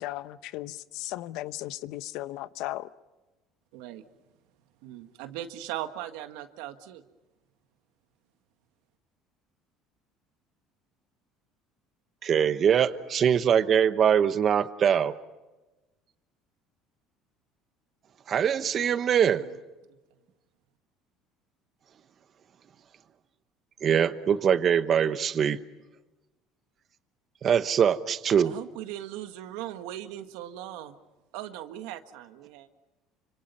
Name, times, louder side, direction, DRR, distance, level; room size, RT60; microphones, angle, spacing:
voice 1, 0.0-2.9, left 16 dB, 70° left, 15 dB, 0.8 m, -36 dB
voice 2, 3.7-4.0 4.8-7.0 19.2-19.5 28.4-31.0 31.3-32.7, right 12 dB, 90° right, 8 dB, 1.7 m, -39 dB
voice 3, 12.2-15.1 18.3-19.4 23.8-25.6 27.4-28.5, right 8 dB, 40° right, 12 dB, 1.1 m, -23 dB
30.0 x 26.0 x 5.6 m, 1.1 s
cardioid pair, 130°, 0 cm